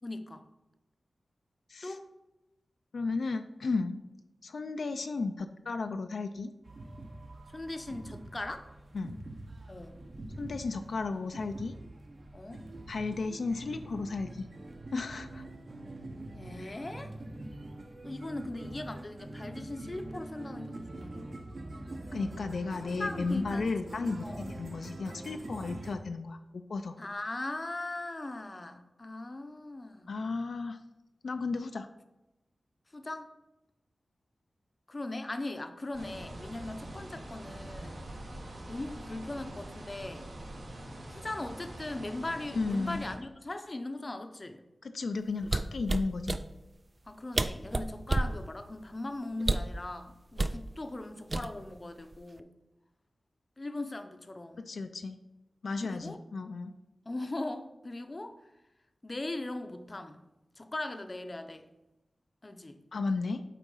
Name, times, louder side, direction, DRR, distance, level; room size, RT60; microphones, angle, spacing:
voice 1, 0.0-0.4 1.8-2.1 7.5-8.7 9.7-10.0 12.3-12.6 16.3-17.1 18.0-21.3 23.0-23.7 24.2-24.4 27.0-30.2 32.9-33.3 34.9-38.0 38.7-40.3 41.1-44.6 47.1-52.5 53.6-54.7 55.8-56.2 57.0-58.5 59.0-60.2 60.6-61.7 62.4-62.8, left 2 dB, 30° left, 8 dB, 0.6 m, -39 dB
voice 2, 2.9-4.0 4.4-6.5 8.9-9.2 10.4-11.8 12.9-14.5 14.9-15.5 22.1-27.0 30.1-30.8 31.2-31.9 42.5-43.0 44.8-46.4 54.7-55.2 55.6-56.7 62.9-63.4, left 3 dB, 75° left, 7 dB, 0.4 m, -34 dB
sound 1, 6.6-26.0, right 1 dB, 50° right, 1.0 m, -44 dB
sound 2, 35.9-43.2, right 1 dB, 80° right, 1.7 m, -44 dB
sound 3, 45.4-46.4 47.1-47.2 47.3-48.4 49.4-49.8 50.4-50.6 51.3-51.8 52.1-52.4, right 2 dB, 30° right, 0.4 m, -29 dB
8.3 x 4.0 x 5.4 m, 0.97 s
wide cardioid pair, 110°, 0 cm